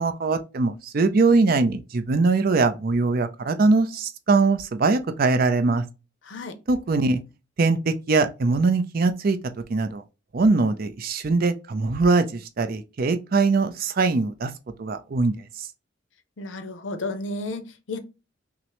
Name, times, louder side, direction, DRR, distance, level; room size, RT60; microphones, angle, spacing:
voice 1, 0.0-5.8 6.7-7.2 7.6-9.4 9.7-10.0 10.3-14.5 14.8-15.3, right 3 dB, 50° right, 0.5 m, -22 dB
voice 2, 6.2-6.6 16.4-18.0, left 2 dB, 70° left, 0.6 m, -32 dB
5.9 x 2.1 x 2.9 m
head